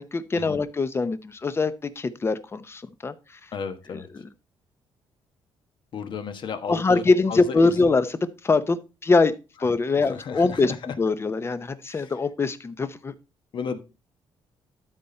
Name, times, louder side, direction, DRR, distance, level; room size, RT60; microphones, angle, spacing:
voice 1, 0.0-3.1 3.9-4.3 6.7-9.3 9.6-10.7 11.0-13.1, left 3 dB, 25° left, 13 dB, 0.8 m, -23 dB
voice 2, 3.5-4.1 5.9-7.0 7.3-7.9 10.0-10.7 11.9-12.1 13.5-13.8, left 6 dB, 55° left, 8 dB, 1.3 m, -33 dB
12.5 x 4.2 x 4.4 m, 0.30 s
cardioid pair, 120°, 10 cm